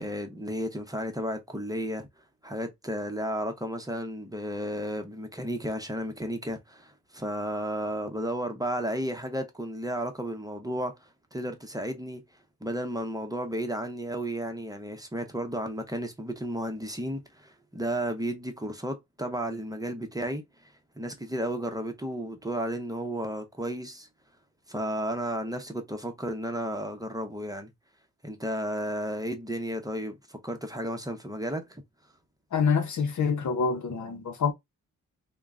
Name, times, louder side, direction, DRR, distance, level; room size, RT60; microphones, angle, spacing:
voice 1, 0.0-2.1 2.4-12.2 12.6-20.7 21.0-24.1 24.7-27.7 28.2-31.8, equal, 10° right, 0.8 m, -33 dB
voice 2, 32.5-34.5, left 5 dB, 65° left, 0.8 m, -26 dB
3.7 x 2.2 x 3.6 m
cardioid pair, 90°, 32 cm